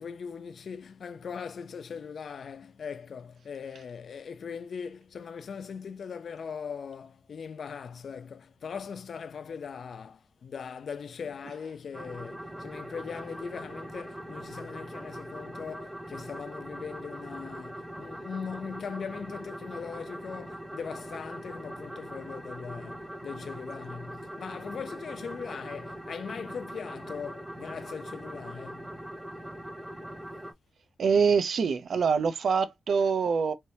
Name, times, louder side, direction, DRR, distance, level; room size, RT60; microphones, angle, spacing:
voice 1, 0.0-28.9, left 6 dB, 70° left, 0.3 m, -40 dB
sound 1, 11.9-30.5, right 1 dB, 10° right, 0.7 m, -41 dB
voice 2, 31.0-33.5, right 5 dB, 75° right, 0.5 m, -25 dB
3.3 x 2.7 x 2.8 m
wide cardioid pair, 100°, 0 cm